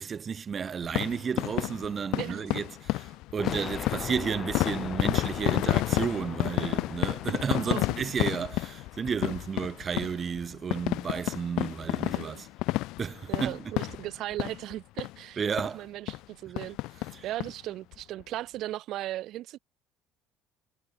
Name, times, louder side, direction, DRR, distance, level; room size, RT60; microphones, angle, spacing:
voice 1, 0.0-12.5 13.0-13.7 15.4-15.8 17.1-17.3, right 6 dB, 35° right, 1.2 m, -32 dB
sound 1, 0.8-14.7 15.0-15.2 15.6-15.7 16.1-16.2 16.6-17.5 17.9-18.0 18.2-18.3, left 19 dB, 75° left, 0.4 m, -31 dB
sound 2, 3.4-8.3, left 9 dB, 45° left, 1.6 m, -39 dB
voice 2, 7.5-7.9 12.1-12.4 13.3-15.4 15.7-19.6, right 14 dB, 65° right, 1.2 m, -37 dB
supercardioid pair, 100°, 0 cm